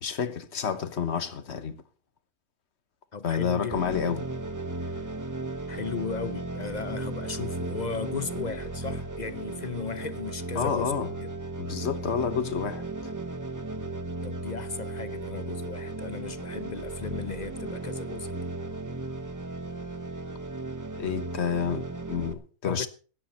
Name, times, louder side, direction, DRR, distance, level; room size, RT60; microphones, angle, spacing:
voice 1, 0.0-1.8 3.2-4.3 10.6-11.1 11.6-12.8 21.0-22.9, left 7 dB, 60° left, 1.4 m, -29 dB
voice 2, 3.1-4.0 4.9-5.1 5.7-11.3 14.2-18.5 22.7-22.9, left 5 dB, 40° left, 0.7 m, -36 dB
sound 1, 3.7-22.3, right 2 dB, 15° right, 0.8 m, -35 dB
16.5 x 11.5 x 4.3 m
omnidirectional pair, 1.4 m